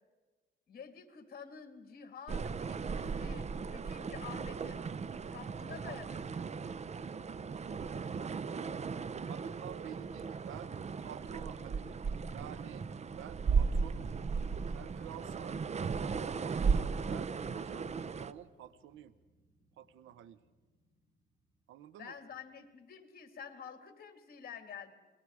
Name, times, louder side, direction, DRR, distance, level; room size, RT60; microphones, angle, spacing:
voice 1, 0.7-4.9 5.3-6.5 22.0-24.9, left 7 dB, 50° left, 7 dB, 2.8 m, -49 dB
sound 1, 2.3-18.3, right 5 dB, 35° right, 0.7 m, -36 dB
voice 2, 9.3-10.7 11.0-12.0 12.3-12.9 13.2-14.1 14.7-15.6 16.0-19.1 19.8-20.4 21.7-22.1, right 10 dB, 85° right, 16 dB, 0.9 m, -49 dB
sound 2, 14.1-22.8, right 3 dB, 20° right, 5.1 m, -66 dB
27.0 x 21.0 x 4.9 m, 1.3 s
cardioid pair, 90°, 20 cm